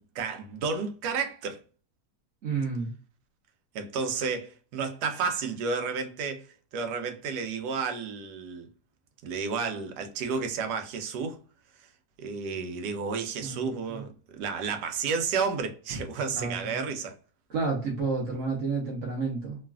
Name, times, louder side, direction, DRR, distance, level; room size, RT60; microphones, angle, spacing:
voice 1, 0.0-1.6 3.7-6.5 6.7-8.7 9.2-11.4 12.2-17.1, right 5 dB, 80° right, 1.2 m, -31 dB
voice 2, 2.4-2.9 13.4-14.0 16.3-16.8 17.5-19.6, right 4 dB, 55° right, 1.0 m, -31 dB
3.1 x 2.3 x 2.3 m
omnidirectional pair, 1.8 m